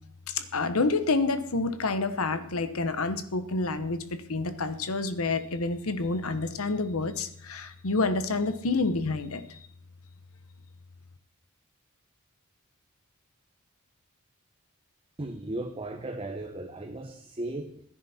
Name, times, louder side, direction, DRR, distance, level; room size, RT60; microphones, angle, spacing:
voice 1, 0.3-9.6, left 3 dB, 75° left, 10 dB, 1.0 m, -28 dB
voice 2, 15.2-17.8, right 2 dB, 25° right, 5 dB, 0.9 m, -36 dB
15.5 x 10.5 x 4.3 m, 0.65 s
head